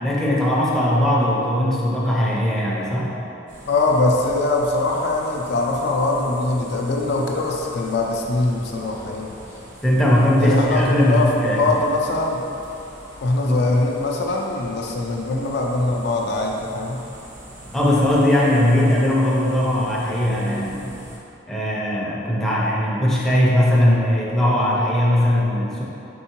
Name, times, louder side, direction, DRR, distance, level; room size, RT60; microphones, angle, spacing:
voice 1, 0.0-3.1 9.8-11.7 13.4-13.5 17.7-20.9 21.5-25.8, left 1 dB, ahead, -6 dB, 0.5 m, -19 dB
sound 1, 3.5-21.2, equal, 65° right, 1.2 m, -42 dB
voice 2, 3.7-9.3 10.4-12.4 13.2-17.0, left 2 dB, 55° left, 0 dB, 0.4 m, -22 dB
4.5 x 3.6 x 2.9 m, 2.9 s
head